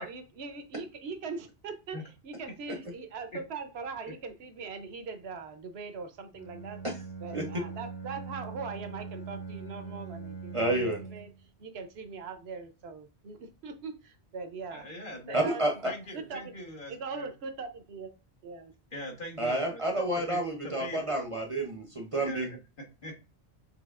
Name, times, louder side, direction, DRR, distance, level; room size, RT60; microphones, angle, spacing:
voice 1, 0.0-2.0 2.2-6.8 7.2-11.3 11.6-14.9 15.3-16.5 16.9-18.1 18.4-18.7, right 4 dB, 70° right, 0.9 m, -41 dB
Bowed string instrument, 6.3-11.4, right 5 dB, 30° left, 0.6 m, -42 dB
voice 2, 10.5-11.0 15.3-15.9 19.4-22.5, right 1 dB, 35° right, 0.7 m, -29 dB
voice 3, 14.7-15.4 15.8-17.3 18.9-21.1 22.2-23.2, left 1 dB, 50° left, 1.4 m, -42 dB
6.2 x 3.1 x 2.4 m
omnidirectional pair, 1.1 m